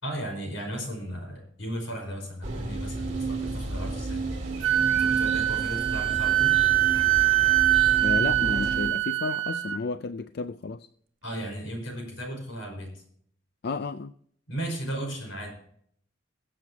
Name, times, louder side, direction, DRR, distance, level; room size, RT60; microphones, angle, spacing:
voice 1, 0.0-4.2 5.0-6.6 11.2-13.0 14.5-15.5, right 1 dB, 85° left, 5.2 m, -35 dB
sound 1, 2.4-8.9, right 3 dB, 35° right, 2.5 m, -32 dB
Wind instrument woodwind instrument, 4.6-9.8, right 14 dB, 75° right, 1.4 m, -23 dB
voice 2, 8.0-10.9 13.6-14.1, left 4 dB, 55° left, 0.4 m, -32 dB
22.0 x 7.5 x 2.9 m
head